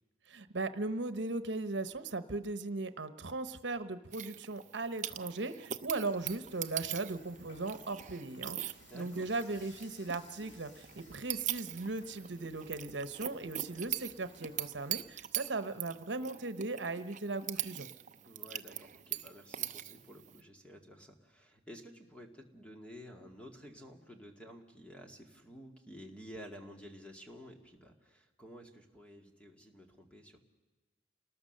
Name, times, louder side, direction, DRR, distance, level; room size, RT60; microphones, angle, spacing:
voice 1, 0.3-17.9, right 3 dB, 75° right, 11 dB, 1.0 m, -38 dB
sound 1, 4.1-20.4, right 12 dB, 40° right, 0.7 m, -42 dB
Dishes pots and pans / Frying (food), 6.1-15.2, left 2 dB, 70° left, 2.1 m, -61 dB
voice 2, 8.9-9.3 18.2-30.4, equal, 5° left, 2 dB, 2.1 m, -52 dB
28.5 x 19.5 x 6.7 m, 1.3 s
head